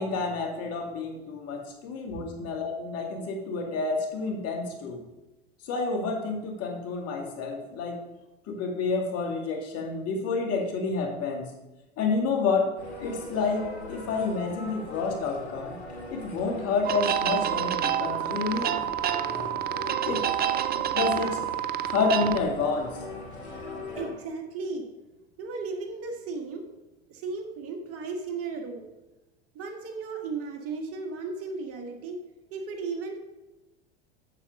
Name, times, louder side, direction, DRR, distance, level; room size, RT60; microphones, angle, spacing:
voice 1, 0.0-5.0 5.7-8.0 8.5-11.5 12.0-12.7 13.0-15.8 16.1-18.7 20.0-20.3 20.9-21.4 21.8-23.0, left 4 dB, 50° left, 2 dB, 2.3 m, -29 dB
sound 1, 12.8-24.1, left 2 dB, 90° left, 2.5 m, -41 dB
sound 2, 16.8-22.4, right 10 dB, 30° right, 0.6 m, -28 dB
voice 2, 23.9-24.9 25.4-26.7 27.1-28.8 29.5-32.2 32.5-33.2, right 4 dB, 45° right, 3 dB, 1.8 m, -35 dB
7.6 x 7.2 x 5.3 m, 1.0 s
hypercardioid pair, 95°, 32 cm